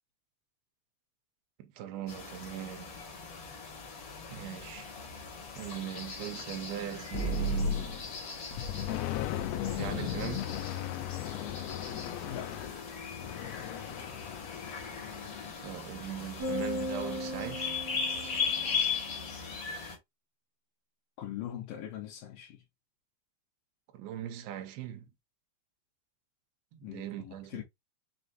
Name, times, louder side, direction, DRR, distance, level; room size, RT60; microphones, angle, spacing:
voice 1, 1.6-3.0 4.3-5.0 5.6-7.9 9.7-10.6 15.6-17.8 23.9-25.1 26.7-27.6, right 11 dB, 80° right, 2.6 m, -40 dB
sound 1, 2.1-20.0, left 5 dB, 55° left, 1.7 m, -39 dB
sound 2, 7.1-8.2 8.5-15.5, left 5 dB, 90° left, 2.5 m, -36 dB
voice 2, 12.2-12.5 21.2-22.6 26.8-27.6, left 11 dB, 75° left, 2.2 m, -41 dB
sound 3, 16.4-18.9, left 1 dB, 60° right, 2.0 m, -37 dB
6.2 x 2.6 x 2.5 m
omnidirectional pair, 4.4 m